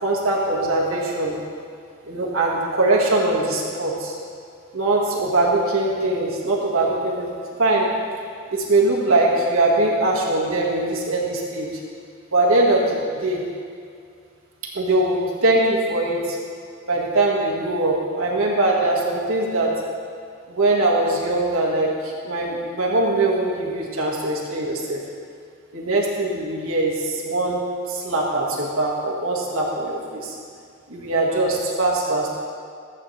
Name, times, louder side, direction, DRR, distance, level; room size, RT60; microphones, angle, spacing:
voice 1, 0.0-1.4 2.1-4.1 4.7-7.3 7.6-7.9 8.5-11.7 12.3-13.4 14.7-16.4 16.9-19.7 20.5-25.0 25.7-30.3 30.9-32.4, right 2 dB, 70° right, -3 dB, 1.8 m, -21 dB
14.5 x 8.6 x 3.3 m, 2.2 s
head